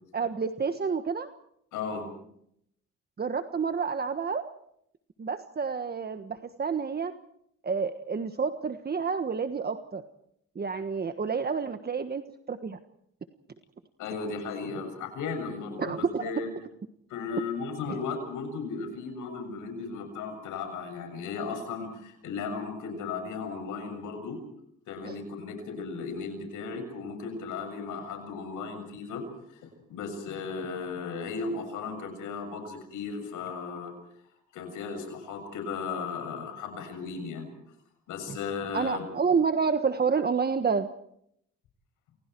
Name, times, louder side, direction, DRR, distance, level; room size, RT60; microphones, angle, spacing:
voice 1, 0.1-1.3 3.2-4.4 5.2-7.1 7.6-10.0 10.5-12.2 12.5-12.8 15.8-16.3 17.9-18.0 25.0-25.2 38.3-38.4 38.7-40.9, right 5 dB, 30° right, 8 dB, 1.4 m, -29 dB
voice 2, 1.7-2.1 14.0-16.5 17.1-24.4 24.9-29.6 29.9-33.9 34.5-37.5 38.1-39.0, left 5 dB, 90° left, 6 dB, 7.3 m, -36 dB
29.0 x 28.0 x 4.7 m, 0.73 s
cardioid pair, 90°, 30 cm